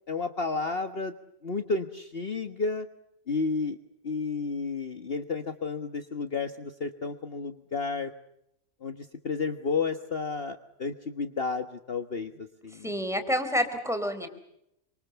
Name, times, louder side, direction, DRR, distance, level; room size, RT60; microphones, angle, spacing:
voice 1, 0.1-1.1 1.4-2.9 3.3-3.8 4.0-8.1 8.8-12.9, left 4 dB, 45° left, 7 dB, 1.6 m, -32 dB
voice 2, 12.8-14.3, equal, ahead, 8 dB, 4.0 m, -28 dB
27.0 x 26.5 x 7.0 m, 0.78 s
omnidirectional pair, 1.4 m